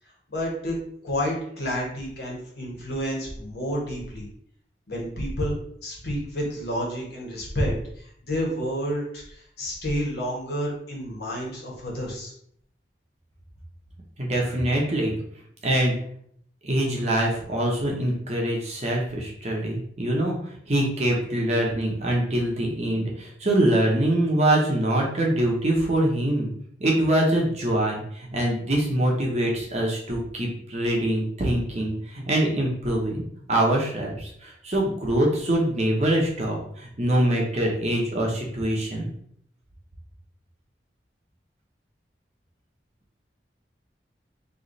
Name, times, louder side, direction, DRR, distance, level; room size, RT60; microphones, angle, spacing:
voice 1, 0.3-0.8 1.0-4.3 4.9-5.5 5.8-12.3, equal, 65° left, -3 dB, 1.5 m, -30 dB
voice 2, 14.2-15.2 15.6-15.9 16.6-20.4 20.7-26.5 26.8-33.2 33.5-39.1, right 1 dB, 40° right, -2 dB, 1.0 m, -24 dB
3.2 x 3.2 x 4.0 m, 0.67 s
head